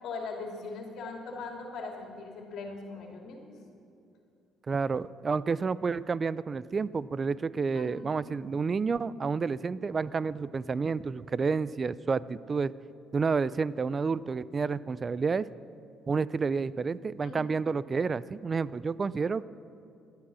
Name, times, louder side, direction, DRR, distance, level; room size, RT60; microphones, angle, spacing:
voice 1, 0.0-3.5 7.7-8.1 11.4-11.5 17.2-17.5, left 3 dB, 65° left, 1 dB, 2.6 m, -40 dB
voice 2, 4.7-12.7 13.1-15.5 16.1-19.4, right 5 dB, 30° right, 18 dB, 0.4 m, -30 dB
17.0 x 11.5 x 6.2 m, 2.7 s
cardioid pair, 115°, 0 cm